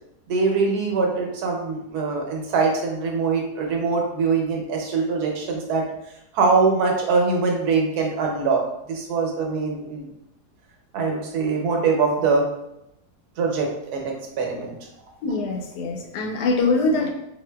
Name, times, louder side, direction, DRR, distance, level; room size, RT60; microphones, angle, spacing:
voice 1, 0.3-5.8 6.3-8.6 8.9-10.1 10.9-12.5 13.4-14.8, right 4 dB, 75° right, 0 dB, 1.2 m, -23 dB
voice 2, 15.2-17.1, left 3 dB, 90° left, 2 dB, 1.2 m, -23 dB
3.6 x 2.5 x 2.2 m, 0.82 s
omnidirectional pair, 1.7 m